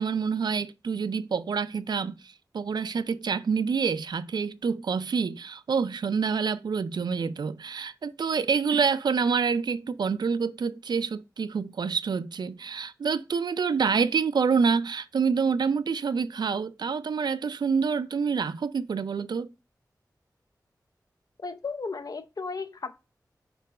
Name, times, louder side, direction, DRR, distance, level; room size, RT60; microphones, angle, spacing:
voice 1, 0.0-19.5, right 5 dB, 85° right, 0.4 m, -27 dB
voice 2, 21.4-22.9, left 4 dB, 60° left, 0.6 m, -34 dB
4.4 x 4.0 x 5.3 m
wide cardioid pair, 65°, 7 cm